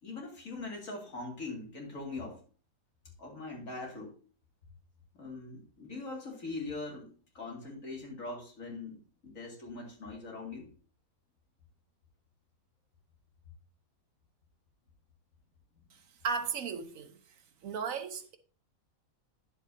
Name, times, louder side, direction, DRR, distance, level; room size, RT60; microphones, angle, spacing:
voice 1, 0.0-2.4 3.2-4.2 5.1-7.1 7.3-10.7 15.7-15.8, left 3 dB, 70° left, 2.6 m, -42 dB
voice 2, 16.2-17.2 17.6-18.4, right 5 dB, 75° right, 1.3 m, -35 dB
10.0 x 7.3 x 2.7 m
omnidirectional pair, 1.5 m